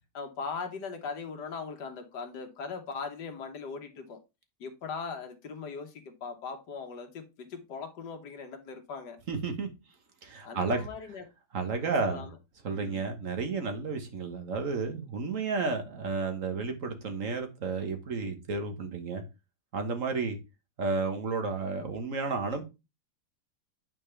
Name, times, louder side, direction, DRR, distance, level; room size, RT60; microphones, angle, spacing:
voice 1, 0.1-4.2 4.6-9.2 10.4-11.2 11.8-12.4 12.7-13.0, left 5 dB, 80° left, 1.7 m, -40 dB
voice 2, 9.3-9.7 10.2-10.8 11.5-12.3 12.6-19.2 19.7-20.4 20.8-22.6, right 4 dB, 55° right, 1.5 m, -32 dB
9.1 x 4.4 x 3.3 m
omnidirectional pair, 1.8 m